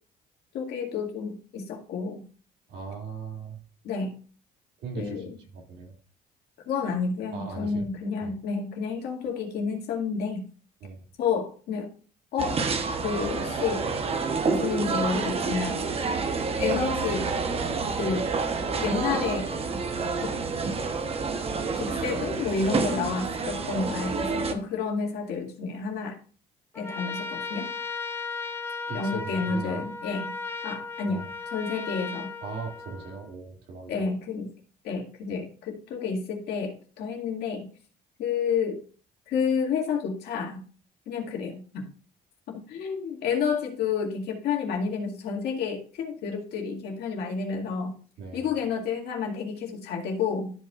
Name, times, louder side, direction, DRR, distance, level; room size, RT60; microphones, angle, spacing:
voice 1, 0.5-2.2 3.8-4.1 5.0-5.3 6.7-10.4 11.2-11.9 12.3-12.6 13.0-13.9 14.5-15.8 16.6-17.3 18.0-18.3 18.8-19.5 20.2-20.3 21.7-26.2 26.7-27.7 28.9-30.3 30.6-31.2 31.5-32.3 33.9-34.5 34.8-37.7 38.2-38.8 39.3-40.6 41.1-41.9 42.5-47.9 48.3-50.5, left 5 dB, 75° left, 1 dB, 2.2 m, -30 dB
voice 2, 2.7-3.6 4.8-5.2 5.5-6.0 7.3-7.9 8.2-8.4 10.8-11.1 28.9-29.9 31.1-31.3 32.4-34.1 48.2-48.5, right 5 dB, 75° right, 0 dB, 2.4 m, -38 dB
sound 1, 12.4-24.5, right 4 dB, 35° right, 1.0 m, -28 dB
Trumpet, 26.7-33.3, left 4 dB, 15° left, 0.8 m, -36 dB
13.0 x 5.3 x 2.5 m, 0.39 s
cardioid pair, 110°, 17 cm